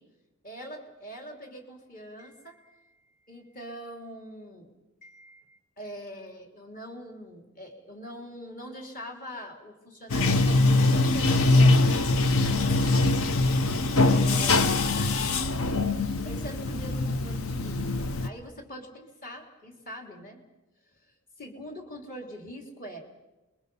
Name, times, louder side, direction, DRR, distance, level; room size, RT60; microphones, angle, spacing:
voice 1, 0.4-3.0 3.3-4.7 5.0-11.9 12.5-12.8 14.0-15.2 16.2-20.4 21.4-23.0, equal, 40° left, 2 dB, 3.5 m, -43 dB
Bathtub (filling or washing), 10.1-18.3, left 2 dB, 65° left, 0.9 m, -23 dB
29.0 x 22.5 x 5.6 m, 1.1 s
head